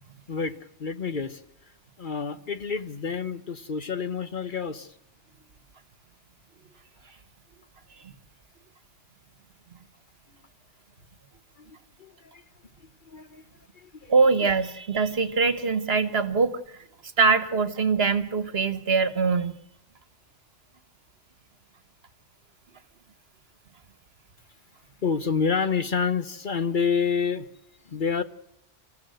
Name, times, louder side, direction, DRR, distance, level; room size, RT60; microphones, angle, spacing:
voice 1, 0.3-1.4 2.0-4.9 11.6-11.7 12.0-12.4 13.1-13.4 13.8-14.1 25.0-27.5 27.9-28.2, left 6 dB, 45° left, 11 dB, 1.0 m, -28 dB
voice 2, 14.1-16.6 17.2-19.6, right 4 dB, 60° right, 14 dB, 1.6 m, -23 dB
26.5 x 15.0 x 7.7 m, 0.81 s
omnidirectional pair, 1.2 m